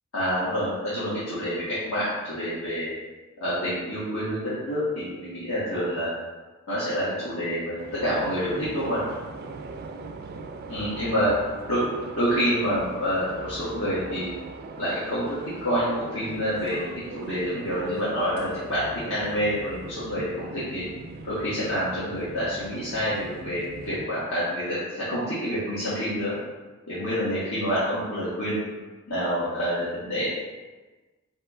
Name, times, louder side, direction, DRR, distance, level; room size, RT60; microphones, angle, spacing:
voice 1, 0.1-2.9 3.4-6.1 6.7-9.0 10.7-11.3 11.7-11.8 12.2-14.3 14.8-20.8 21.2-26.3 26.9-28.6 29.1-30.3, equal, 70° left, -11 dB, 1.3 m, -27 dB
sound 1, 7.8-24.1, right 3 dB, 45° right, 0.3 m, -40 dB
4.8 x 2.9 x 3.5 m, 1.3 s
head